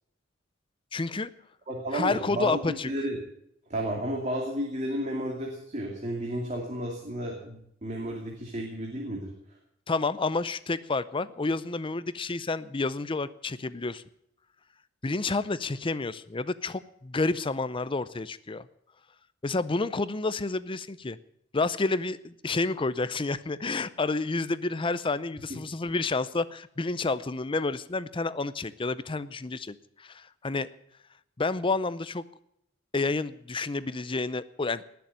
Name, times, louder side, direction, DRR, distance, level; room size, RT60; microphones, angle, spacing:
voice 1, 0.9-1.3 1.9-2.9 9.9-14.0 15.0-18.7 19.4-21.2 21.5-30.7 31.4-32.2 32.9-34.9, left 3 dB, 25° left, 16 dB, 0.6 m, -30 dB
voice 2, 1.7-3.2 3.7-9.3, right 1 dB, 35° right, -1 dB, 2.7 m, -32 dB
19.5 x 7.0 x 9.1 m, 0.73 s
head